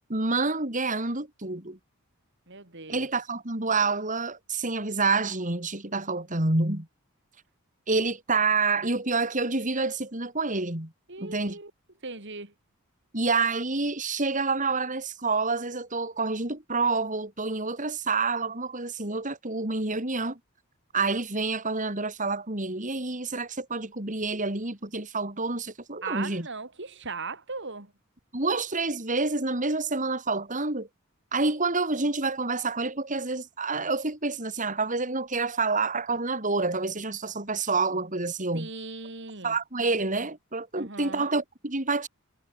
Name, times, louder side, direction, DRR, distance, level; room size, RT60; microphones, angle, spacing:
voice 1, 0.1-1.8 2.9-6.9 7.9-10.9 11.2-11.6 13.1-20.4 20.9-26.5 28.3-30.9 31.3-38.7 39.4-42.1, right 3 dB, 35° right, 4.0 m, -28 dB
voice 2, 2.5-3.1 11.1-11.7 12.0-12.5 26.0-27.9 38.5-39.6 40.7-41.3, right 4 dB, 55° right, 4.3 m, -38 dB
head